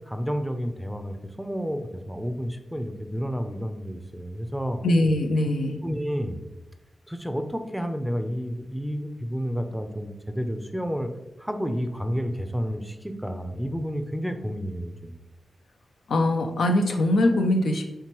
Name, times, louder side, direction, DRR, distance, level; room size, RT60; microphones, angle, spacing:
voice 1, 0.0-4.8 5.8-6.4 7.1-11.1 11.4-15.1, equal, 5° right, 7 dB, 0.5 m, -30 dB
voice 2, 4.8-5.8 16.1-17.8, left 1 dB, 85° left, 3 dB, 0.5 m, -22 dB
4.5 x 3.3 x 3.0 m, 0.97 s
cardioid pair, 55°, 0 cm